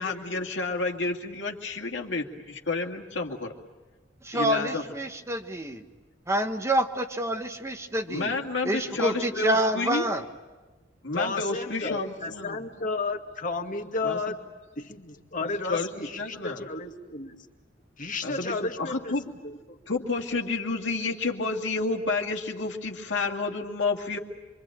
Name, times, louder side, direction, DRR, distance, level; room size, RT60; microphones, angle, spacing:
voice 1, 0.0-3.5 4.3-4.8 8.1-10.1 11.0-12.6 14.0-14.2 15.4-16.6 18.2-19.2 19.9-24.2, left 3 dB, 75° left, 2 dB, 2.3 m, -30 dB
voice 2, 4.2-5.8 6.3-8.3 8.6-10.2, right 1 dB, 15° right, 5 dB, 1.2 m, -27 dB
voice 3, 8.8-9.5 11.1-14.4 14.8-17.4 18.0-19.2 19.4-19.8, left 3 dB, 45° left, 4 dB, 2.0 m, -33 dB
27.0 x 24.0 x 8.9 m, 1.3 s
head